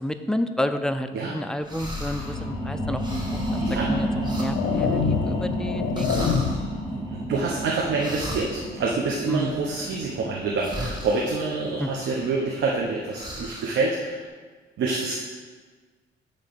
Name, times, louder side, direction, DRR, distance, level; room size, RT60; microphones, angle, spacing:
voice 1, 0.0-6.3 9.3-9.6 11.8-11.9, left 1 dB, 5° left, 8 dB, 0.4 m, -30 dB
sound 1, 1.6-2.4 2.9-5.6 5.9-6.6 7.3-10.0 10.5-11.4 11.9-12.8 13.1-13.9, equal, 20° right, 1.7 m, -37 dB
sound 2, 1.7-12.8 13.2-13.3, equal, 25° left, 2.1 m, -31 dB
sound 3, 3.1-3.3 4.0-6.8, left 6 dB, 85° left, 0.7 m, -27 dB
voice 2, 3.6-4.0 6.5-14.2 14.8-15.1, right 3 dB, 75° right, -2 dB, 1.0 m, -27 dB
8.8 x 3.2 x 6.0 m, 1.4 s
cardioid pair, 90°, 20 cm